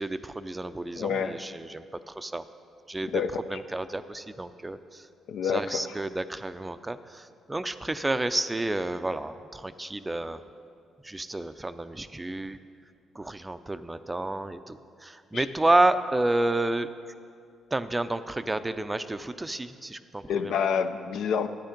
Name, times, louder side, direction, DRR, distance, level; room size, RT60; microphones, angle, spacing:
voice 1, 0.0-2.4 2.9-3.2 3.5-5.1 5.4-10.4 11.0-12.6 13.1-16.9 17.7-20.5, right 2 dB, 15° right, 11 dB, 0.4 m, -30 dB
voice 2, 1.0-1.4 3.1-3.4 5.3-5.8 15.3-15.5 20.3-21.5, left 7 dB, 75° left, 9 dB, 0.5 m, -28 dB
11.5 x 9.1 x 5.2 m, 2.3 s
cardioid pair, 90°, 0 cm